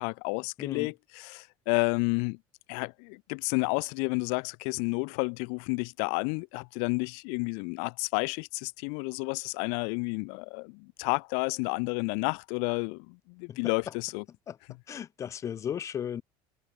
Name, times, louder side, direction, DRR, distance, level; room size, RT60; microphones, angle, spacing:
voice 1, 0.0-2.4 2.7-14.2, left 40 dB or more, 85° left, 0.6 m, -31 dB
voice 2, 0.6-0.9 13.5-13.9 14.5-14.6 14.9-16.2, left 9 dB, 25° left, 1.5 m, -36 dB
cardioid pair, 175°, 11 cm